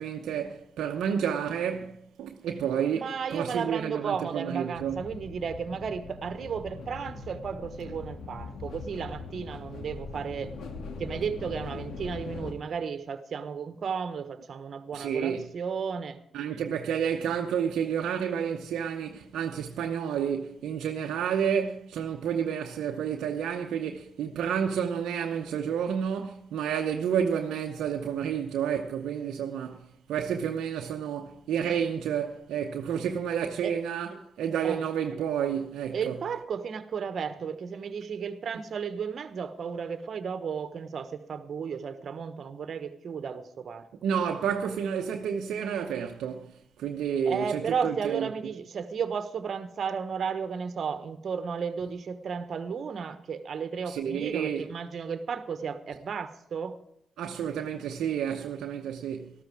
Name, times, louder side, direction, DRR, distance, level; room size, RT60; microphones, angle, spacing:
voice 1, 0.0-5.0 14.9-15.5 16.3-29.8 30.1-36.1 44.0-46.5 46.8-48.3 53.9-54.7 57.2-59.3, right 8 dB, 80° right, 0.8 m, -30 dB
voice 2, 2.9-10.5 11.0-16.2 33.6-33.7 34.6-34.8 35.9-43.9 47.2-56.8, right 6 dB, 65° right, 1.2 m, -34 dB
sound 1, 4.7-12.5, left 4 dB, 75° left, 2.2 m, -41 dB
14.0 x 13.0 x 4.8 m
supercardioid pair, 50°, 0 cm